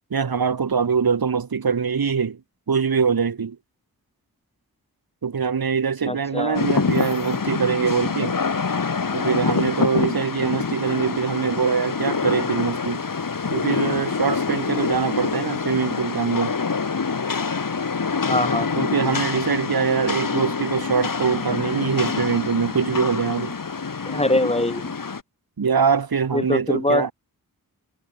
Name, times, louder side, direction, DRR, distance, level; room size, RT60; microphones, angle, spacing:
voice 1, 0.1-2.4 2.7-3.6 5.2-8.3 9.1-13.0 13.5-16.5 18.8-23.5 25.6-27.1, right 6 dB, 80° right, 3.4 m, -23 dB
voice 2, 6.1-6.6 18.3-18.7 24.1-24.9 26.3-27.1, left 1 dB, 15° left, 4.5 m, -23 dB
Rain, 6.5-25.2, left 5 dB, 65° left, 5.1 m, -26 dB
wide cardioid pair, 100°, 36 cm